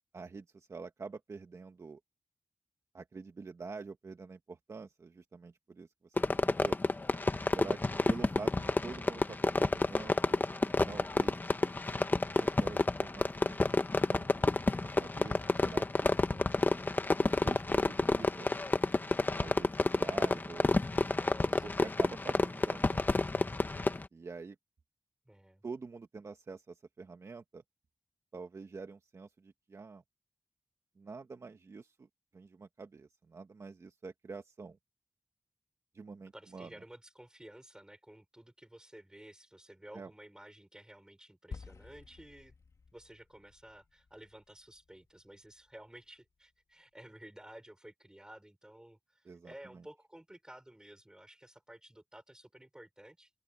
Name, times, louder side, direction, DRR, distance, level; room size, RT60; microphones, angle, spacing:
voice 1, 0.1-2.0 2.9-6.8 7.5-7.8 8.1-10.4 10.6-11.5 12.4-13.7 14.0-16.5 17.2-18.5 19.4-20.7 21.8-23.5 24.1-24.5 25.6-27.6 28.3-30.0 31.0-32.1 32.3-34.8 35.9-36.7 39.9-40.1 49.2-49.8, right 4 dB, 65° right, 1.6 m, -47 dB
Fireworks, 6.2-24.1, left 2 dB, 35° left, 1.3 m, -30 dB
voice 2, 7.7-8.8 21.3-21.7 25.3-25.6 36.3-42.6 42.9-53.3, right 1 dB, 15° right, 5.5 m, -54 dB
sound 1, 41.5-45.9, left 4 dB, 75° left, 2.5 m, -52 dB
open air
wide cardioid pair, 75°, 5 cm